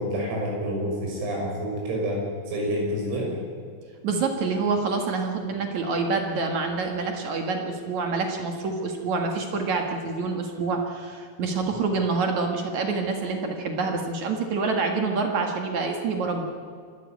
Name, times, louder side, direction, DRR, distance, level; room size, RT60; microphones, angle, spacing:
voice 1, 0.0-3.4, equal, 90° right, -2 dB, 8.9 m, -28 dB
voice 2, 4.0-16.5, right 4 dB, 60° right, 3 dB, 2.0 m, -27 dB
27.0 x 13.0 x 9.3 m, 2.2 s
omnidirectional pair, 5.9 m